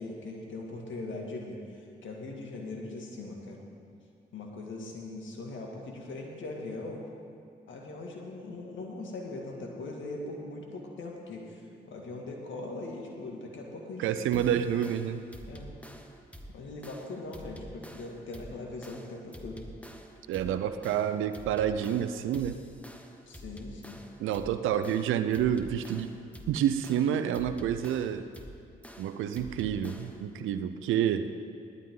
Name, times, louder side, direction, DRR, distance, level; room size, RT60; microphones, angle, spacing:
voice 1, 0.0-3.6 4.3-7.0 7.7-14.7 15.5-15.7 16.5-19.6 23.3-24.0, left 2 dB, 70° left, 0 dB, 2.2 m, -40 dB
voice 2, 14.0-15.2 20.3-22.6 24.2-26.1 26.5-28.2 29.0-31.3, right 9 dB, 85° right, 11 dB, 0.6 m, -28 dB
sound 1, 14.3-30.3, equal, 5° left, 1.5 m, -48 dB
18.0 x 12.0 x 3.8 m, 2.4 s
supercardioid pair, 40°, 20 cm